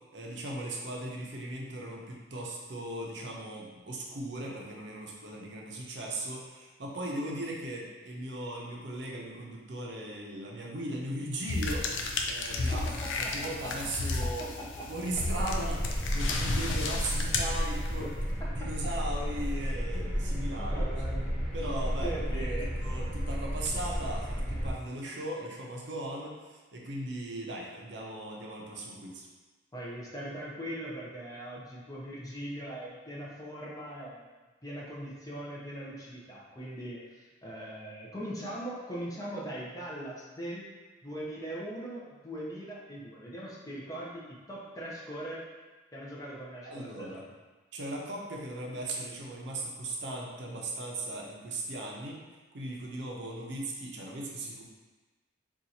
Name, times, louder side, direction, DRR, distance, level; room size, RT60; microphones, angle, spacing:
voice 1, 0.1-14.5 14.9-20.9 21.5-29.3 46.6-47.2 47.7-52.2 52.5-54.6, right 1 dB, 65° right, -2 dB, 0.6 m, -38 dB
sound 1, 11.5-18.1, left 3 dB, 75° left, 0.4 m, -33 dB
voice 2, 13.4-13.7 14.4-14.5 14.8-14.9 18.0-18.1 19.9-21.5 22.0-22.7 29.7-34.2 34.6-37.0 37.4-40.6 41.0-45.4 45.9-47.3, right 1 dB, 20° left, -6 dB, 0.5 m, -40 dB
sound 2, 15.1-24.7, equal, 5° right, 1.0 m, -32 dB
2.7 x 2.4 x 4.1 m, 1.3 s
head